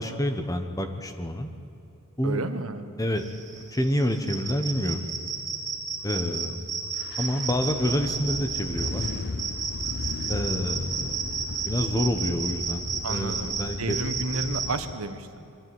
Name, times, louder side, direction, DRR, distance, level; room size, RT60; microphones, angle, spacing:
voice 1, 0.0-1.5 2.2-2.4 3.0-3.2 3.7-5.0 6.0-6.6 7.2-9.0 10.3-11.2 11.6-12.8 13.1-14.0, equal, 15° left, 7 dB, 1.2 m, -28 dB
voice 2, 2.2-2.9 8.0-8.1 13.0-15.5, right 2 dB, 80° right, 8 dB, 1.3 m, -32 dB
sound 1, 3.2-14.7, right 5 dB, 15° right, 2.2 m, -32 dB
sound 2, 6.9-14.9, left 3 dB, 50° left, 0.5 m, -37 dB
23.0 x 13.0 x 9.4 m, 2.8 s
head